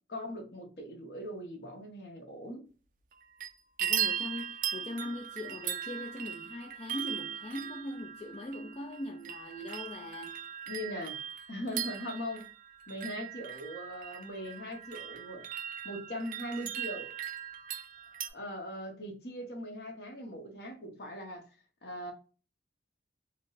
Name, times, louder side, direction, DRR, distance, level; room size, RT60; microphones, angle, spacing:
voice 1, 0.1-2.7 10.7-11.2 11.5-12.4 12.9-15.5 15.8-17.1 18.2-21.5 21.8-22.1, equal, 60° left, 0.9 m, -40 dB
sound 1, 3.1-3.5 3.8-18.3, right 9 dB, 45° right, 0.4 m, -38 dB
voice 2, 3.8-10.5, left 1 dB, 30° left, 0.3 m, -41 dB
4.4 x 2.0 x 2.4 m
head